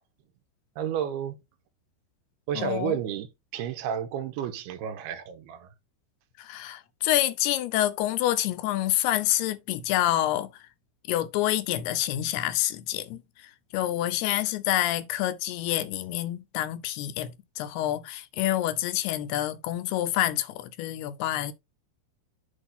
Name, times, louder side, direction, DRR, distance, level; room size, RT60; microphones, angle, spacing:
voice 1, 0.8-1.4 2.5-3.3 3.5-5.7, right 9 dB, 80° right, 2.7 m, -31 dB
voice 2, 2.6-2.9 6.4-10.6 11.1-21.5, left 13 dB, 80° left, 2.6 m, -27 dB
8.2 x 2.8 x 5.6 m
omnidirectional pair, 4.8 m